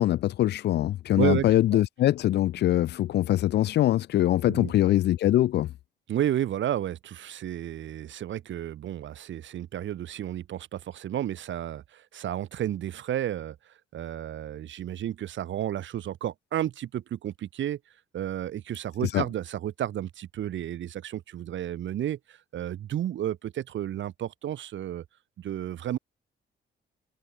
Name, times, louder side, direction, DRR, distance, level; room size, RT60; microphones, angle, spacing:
voice 1, 0.0-5.7 19.1-19.2, left 13 dB, 60° left, 0.4 m, -23 dB
voice 2, 1.2-1.5 1.7-1.8 4.5-4.7 6.1-17.8 18.1-25.0 25.4-26.0, right 11 dB, 70° right, 3.9 m, -32 dB
cardioid pair, 90°, 20 cm